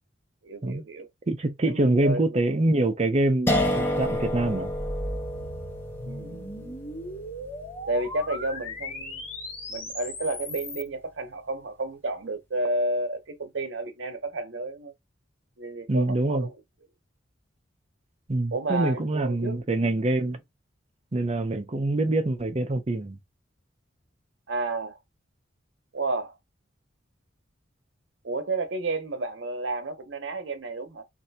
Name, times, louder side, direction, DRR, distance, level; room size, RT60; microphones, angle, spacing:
voice 1, 0.4-1.1 1.6-2.4 6.0-6.8 7.9-9.2 9.7-14.9 15.6-16.6 18.5-19.9 24.5-25.0 25.9-26.3 28.2-31.0, right 2 dB, 70° right, 0.8 m, -31 dB
voice 2, 1.3-4.7 15.9-16.5 18.3-20.4 21.1-23.2, right 2 dB, 35° right, 0.5 m, -25 dB
sound 1, 3.5-10.4, left 1 dB, 10° left, 0.7 m, -31 dB
sound 2, 4.1-10.9, left 1 dB, 35° left, 1.8 m, -38 dB
3.2 x 2.6 x 2.7 m
head